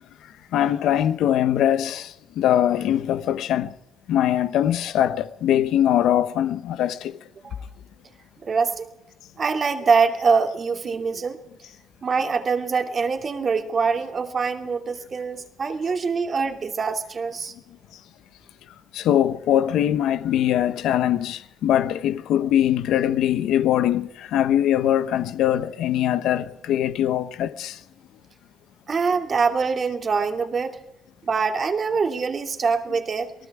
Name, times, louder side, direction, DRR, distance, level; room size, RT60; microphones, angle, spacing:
voice 1, 0.5-3.7 4.1-7.2 18.9-27.8, left 11 dB, 85° left, 1.0 m, -22 dB
voice 2, 8.4-8.9 9.4-11.4 12.0-17.5 28.9-30.8 31.3-33.3, right 5 dB, 45° right, 2.5 m, -24 dB
28.0 x 19.0 x 4.9 m
cardioid pair, 90°, 0 cm